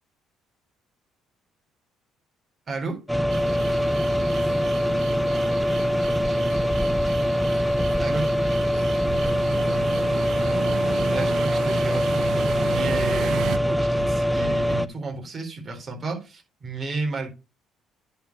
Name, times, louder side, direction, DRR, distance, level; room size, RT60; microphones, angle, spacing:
voice 1, 2.7-3.0 8.0-8.3 11.1-17.3, right 3 dB, 35° right, 4.2 m, -33 dB
sound 1, 3.1-14.9, equal, 5° right, 0.6 m, -23 dB
sound 2, 3.3-13.6, right 10 dB, 70° right, 0.7 m, -35 dB
10.0 x 5.0 x 5.5 m
cardioid pair, 85°, 0 cm